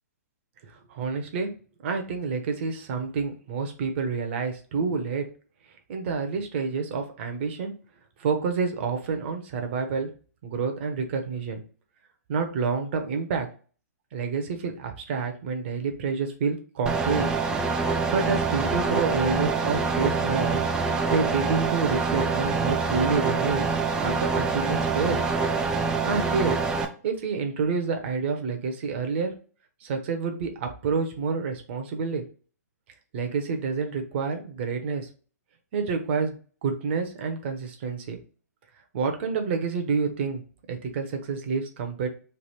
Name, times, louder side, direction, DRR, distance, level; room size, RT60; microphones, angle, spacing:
voice 1, 0.9-1.5 1.8-5.2 5.9-7.7 8.2-10.1 10.4-11.6 12.3-13.5 14.1-17.3 18.1-20.6 21.1-23.7 24.0-25.2 26.0-26.6 27.0-29.3 29.8-32.2 33.1-35.1 35.7-38.2 38.9-40.4 40.7-42.1, right 5 dB, 45° right, 5 dB, 0.9 m, -28 dB
sound 1, 16.9-26.9, right 4 dB, 10° right, 0.3 m, -25 dB
3.3 x 2.6 x 4.1 m, 0.39 s
hypercardioid pair, 150°, 9 cm